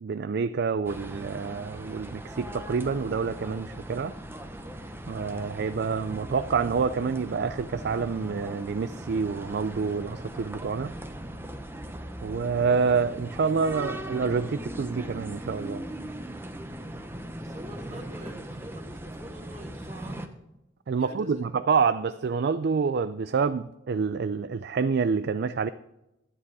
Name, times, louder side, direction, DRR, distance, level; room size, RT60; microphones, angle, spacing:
voice 1, 0.0-4.1 5.1-10.9 12.2-15.8 20.9-25.7, right 5 dB, 55° right, 0.4 m, -27 dB
sound 1, 0.8-20.3, right 1 dB, 10° right, 0.8 m, -39 dB
voice 2, 17.3-20.3 21.0-21.5, right 1 dB, 40° right, 2.4 m, -45 dB
10.5 x 10.0 x 4.8 m
head